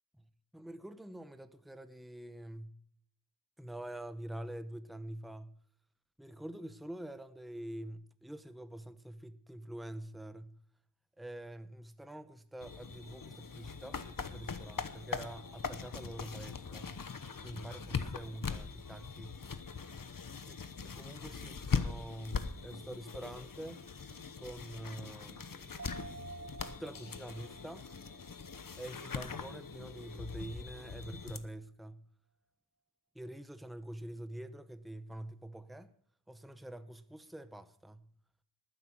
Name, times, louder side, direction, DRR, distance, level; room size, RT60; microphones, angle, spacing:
voice 1, 0.5-2.7 3.6-5.6 6.2-10.6 11.2-17.0 17.4-19.4 20.5-23.8 24.4-25.5 26.6-27.9 28.8-32.0 33.1-35.9 36.3-38.1, right 1 dB, ahead, 0.8 m, -46 dB
sound 1, 12.6-31.4, left 5 dB, 50° left, 1.1 m, -41 dB
sound 2, 25.8-29.5 29.8-29.9, right 4 dB, 40° right, 1.9 m, -52 dB
12.5 x 9.8 x 5.8 m
wide cardioid pair, 80°, 42 cm